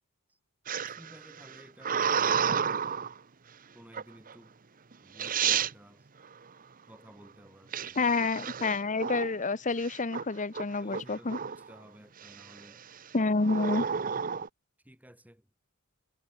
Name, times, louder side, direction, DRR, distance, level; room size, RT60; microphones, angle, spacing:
sound 1, 0.7-3.2 3.9-4.3 4.9-5.0 5.2-5.7 7.7-9.4 9.8-10.2 10.5-11.7 12.2-12.6 13.4-14.5, right 7 dB, 40° right, 0.9 m, -31 dB
voice 1, 0.9-3.1 3.7-4.6 5.0-6.1 6.9-8.1 10.8-12.9 14.8-15.5, equal, 5° right, 7.5 m, -54 dB
voice 2, 8.0-11.4 13.1-13.9, left 3 dB, 35° left, 1.0 m, -28 dB
head